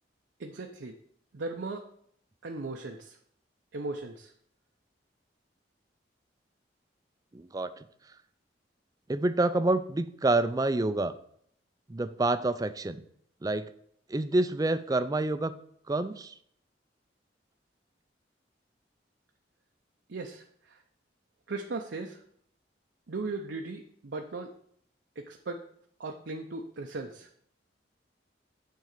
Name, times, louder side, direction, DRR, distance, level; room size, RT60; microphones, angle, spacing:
voice 1, 0.4-0.9 1.3-1.8 2.4-3.2 3.7-4.3 20.1-20.8 21.5-22.2 23.1-24.5 25.2-25.6 26.0-27.3, right 3 dB, 75° right, 2 dB, 0.6 m, -37 dB
voice 2, 7.3-7.9 9.1-11.1 11.9-13.0 13.4-13.7 14.1-15.5 15.9-16.3, right 2 dB, 20° right, 12 dB, 0.4 m, -27 dB
9.3 x 3.8 x 6.6 m, 0.66 s
head